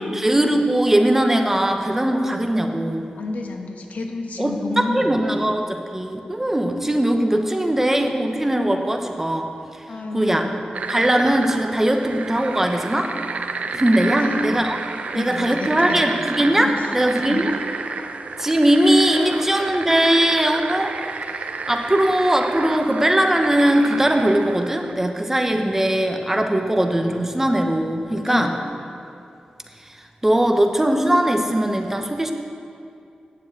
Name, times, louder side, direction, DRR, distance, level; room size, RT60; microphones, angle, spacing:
voice 1, 0.0-3.1 4.4-9.5 10.1-10.4 10.9-13.1 13.7-14.8 15.1-17.5 18.4-20.9 21.4-28.5 30.2-32.3, right 1 dB, 15° right, 4 dB, 0.9 m, -20 dB
voice 2, 3.1-5.4 9.9-10.6 14.2-14.7 15.1-16.2 16.5-17.4 19.1-19.6 28.3-28.7, left 3 dB, 75° left, 3 dB, 1.1 m, -31 dB
sound 1, 10.7-24.9, right 4 dB, 70° right, 0.6 m, -31 dB
9.7 x 7.3 x 8.1 m, 2.5 s
wide cardioid pair, 105°, 3 cm